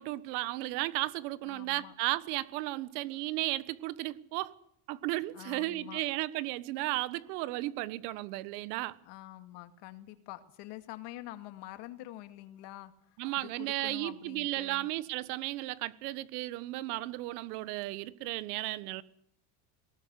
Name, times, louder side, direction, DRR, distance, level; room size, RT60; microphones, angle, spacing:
voice 1, 0.0-4.5 4.9-9.0 13.2-19.0, right 18 dB, 75° right, 1.4 m, -34 dB
voice 2, 1.4-1.9 3.0-3.4 5.3-6.1 9.0-14.9, left 15 dB, 60° left, 2.3 m, -47 dB
20.0 x 18.5 x 8.3 m
supercardioid pair, 140°, 47 cm